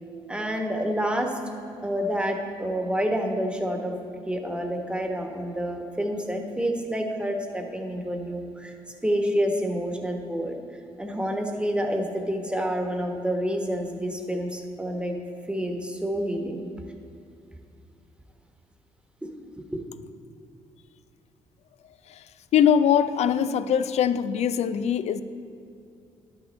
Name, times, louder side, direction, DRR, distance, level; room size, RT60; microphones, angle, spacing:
voice 1, 0.3-1.4 1.8-4.0 4.3-8.7 9.0-10.6 11.0-15.2 15.5-16.7 19.2-19.3 19.6-19.8, equal, 10° right, 3 dB, 1.3 m, -28 dB
voice 2, 22.5-25.2, left 8 dB, 55° left, 13 dB, 0.4 m, -22 dB
11.5 x 6.1 x 4.2 m, 2.6 s
hypercardioid pair, 50°, 13 cm